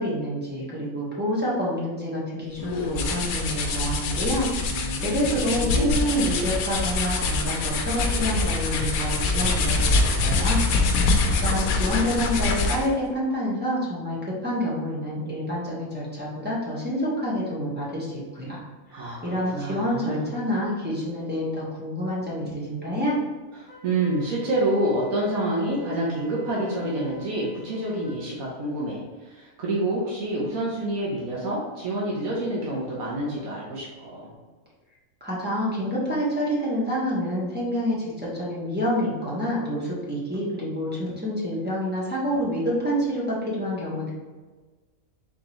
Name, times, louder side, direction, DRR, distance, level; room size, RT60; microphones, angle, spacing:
voice 1, 0.0-10.7 11.3-18.6 19.2-23.2 35.2-44.1, equal, 10° right, -7 dB, 1.2 m, -28 dB
sound 1, 2.6-13.0, left 3 dB, 90° left, 1.1 m, -24 dB
voice 2, 4.7-6.6 18.9-20.3 23.6-34.3, right 1 dB, 85° right, -4 dB, 1.4 m, -28 dB
Wind instrument woodwind instrument, 23.7-28.2, right 2 dB, 40° left, 1.2 m, -47 dB
4.4 x 3.8 x 3.0 m, 1.3 s
omnidirectional pair, 1.4 m